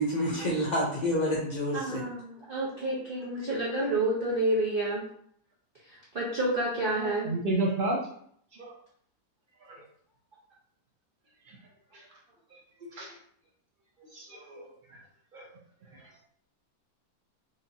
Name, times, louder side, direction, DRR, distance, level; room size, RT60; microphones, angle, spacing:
voice 1, 0.0-2.0, equal, 60° left, -4 dB, 0.4 m, -28 dB
voice 2, 1.7-5.0 5.8-7.3, right 1 dB, 45° right, -5 dB, 0.7 m, -29 dB
voice 3, 7.2-8.1 8.6-8.7 9.6-9.8 11.5-11.6 11.9-12.1 12.5-12.6 12.9-13.2 14.1-15.0 15.3-15.5 15.9-16.0, right 2 dB, 90° right, -2 dB, 0.4 m, -32 dB
4.9 x 2.7 x 2.8 m, 0.64 s
omnidirectional pair, 1.8 m